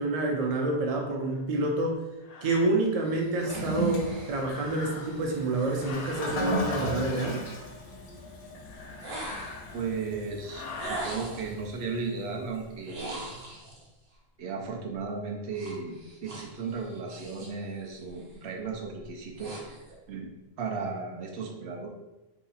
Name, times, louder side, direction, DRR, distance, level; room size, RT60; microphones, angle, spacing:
voice 1, 0.0-2.0 2.4-7.4, right 2 dB, 45° right, 1 dB, 0.5 m, -28 dB
sound 1, 1.3-1.4 2.2-2.7 4.3-5.3 5.7-6.4 8.5-10.0 10.4-11.1, left 4 dB, 55° left, 0.4 m, -43 dB
sound 2, 3.0-7.2 9.0-9.8 10.8-11.6 12.8-13.9 15.5-17.6 18.0-18.4 18.9-20.0, right 2 dB, 60° right, 0.9 m, -42 dB
Toilet flush, 3.3-12.6, left 1 dB, 85° left, 0.9 m, -36 dB
voice 2, 9.7-13.2 14.4-16.0 16.2-19.5 20.1-20.3 20.6-21.9, right 4 dB, 85° right, 1 dB, 0.9 m, -35 dB
2.8 x 2.3 x 3.9 m, 1.0 s
omnidirectional pair, 1.1 m